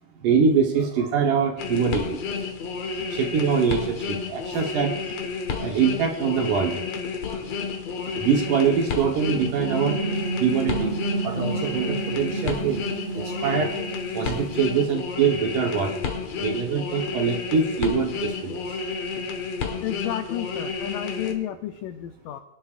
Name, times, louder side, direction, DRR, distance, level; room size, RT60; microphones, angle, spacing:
voice 1, 0.2-2.2 3.1-5.2 5.6-6.8 8.2-10.0 10.4-11.0 11.2-12.8 13.1-13.8 14.1-15.9 16.4-18.7, right 6 dB, 65° right, 1 dB, 2.3 m, -24 dB
sound 1, 1.6-21.3, left 5 dB, 60° left, 1.8 m, -31 dB
sound 2, 9.2-14.9, right 4 dB, 90° right, 3.7 m, -32 dB
voice 2, 19.8-22.4, left 12 dB, 90° left, 6 dB, 1.8 m, -31 dB
24.0 x 10.5 x 2.4 m, 0.89 s
omnidirectional pair, 4.6 m